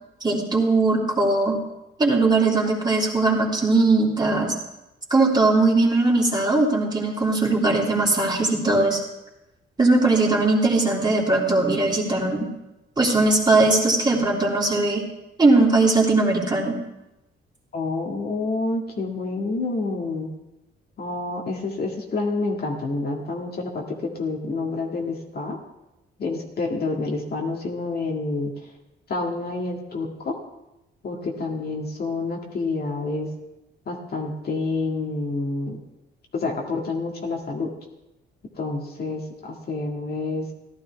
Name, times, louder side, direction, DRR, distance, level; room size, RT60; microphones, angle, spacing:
voice 1, 0.2-1.6 2.0-4.5 5.1-9.0 9.8-12.5 13.0-15.1 15.4-16.8, right 2 dB, 20° right, -2 dB, 2.9 m, -20 dB
voice 2, 17.7-20.3 21.0-25.6 26.2-28.5 29.1-30.3 31.0-33.3 33.9-35.8 36.3-37.7 38.6-40.5, left 3 dB, 50° left, 0 dB, 1.9 m, -28 dB
15.0 x 11.5 x 3.4 m, 0.95 s
cardioid pair, 90°, 20 cm